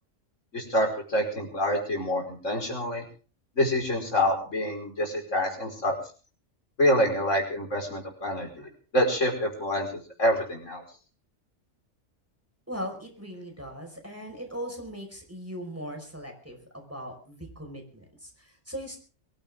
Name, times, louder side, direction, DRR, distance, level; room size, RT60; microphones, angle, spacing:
voice 1, 0.5-3.0 3.6-6.0 6.8-10.8, left 1 dB, 75° left, 1 dB, 5.5 m, -27 dB
voice 2, 12.7-19.0, equal, 10° right, 2 dB, 5.3 m, -39 dB
23.5 x 16.0 x 3.7 m, 0.39 s
omnidirectional pair, 1.3 m